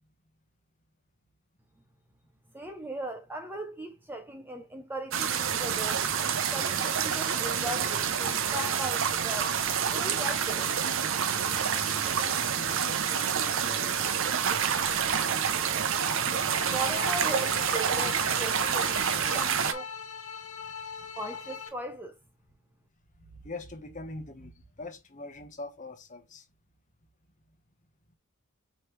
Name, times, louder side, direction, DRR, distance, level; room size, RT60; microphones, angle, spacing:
voice 1, 2.5-6.1 6.5-9.6 9.9-10.7 16.7-20.0 21.2-22.1, right 1 dB, 10° right, 0.4 m, -38 dB
sound 1, 5.1-19.7, right 7 dB, 60° right, 0.5 m, -28 dB
voice 2, 11.7-14.0 14.6-15.6 23.4-26.4, left 2 dB, 35° left, 0.9 m, -44 dB
sound 2, 16.4-21.7, left 6 dB, 85° left, 1.4 m, -40 dB
5.0 x 3.0 x 3.1 m
head